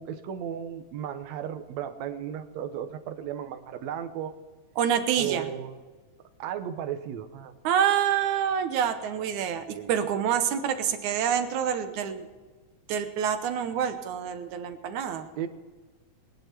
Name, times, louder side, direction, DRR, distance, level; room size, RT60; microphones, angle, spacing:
voice 1, 0.0-4.3 5.2-5.8 6.4-7.5 9.7-10.0 15.4-15.5, right 9 dB, 70° right, 8 dB, 2.1 m, -35 dB
voice 2, 4.8-5.5 7.6-12.3 12.9-15.3, right 8 dB, 85° right, 8 dB, 2.5 m, -27 dB
19.5 x 10.5 x 4.5 m, 1.4 s
omnidirectional pair, 3.3 m